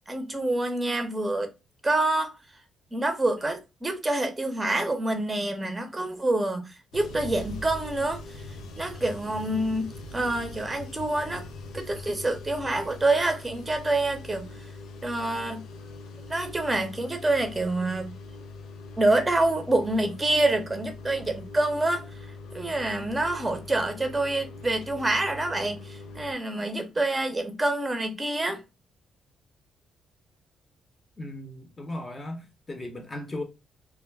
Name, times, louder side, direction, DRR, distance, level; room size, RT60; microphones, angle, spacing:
voice 1, 0.1-1.5 1.8-2.3 2.9-8.4 8.8-11.5 11.7-14.5 15.0-15.6 16.3-18.1 19.0-22.0 22.5-28.6, right 2 dB, 20° right, 0.7 m, -27 dB
sound 1, 6.9-26.3, left 2 dB, 75° left, 0.5 m, -42 dB
voice 2, 31.2-33.4, left 1 dB, 25° left, 0.8 m, -37 dB
2.3 x 2.1 x 3.2 m
cardioid pair, 90°, 0 cm